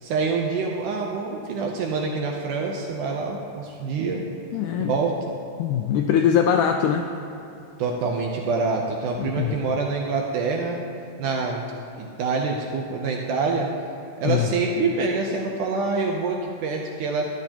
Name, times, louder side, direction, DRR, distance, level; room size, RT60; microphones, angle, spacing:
voice 1, 0.0-4.2 4.8-5.1 7.8-10.8 11.2-11.6 12.0-13.7 14.2-17.2, right 4 dB, 75° right, 0 dB, 2.0 m, -26 dB
voice 2, 4.5-4.9 5.6-7.1 9.2-9.6 14.3-14.5, left 8 dB, 85° left, 4 dB, 1.8 m, -22 dB
13.0 x 12.0 x 2.9 m, 2.9 s
omnidirectional pair, 4.1 m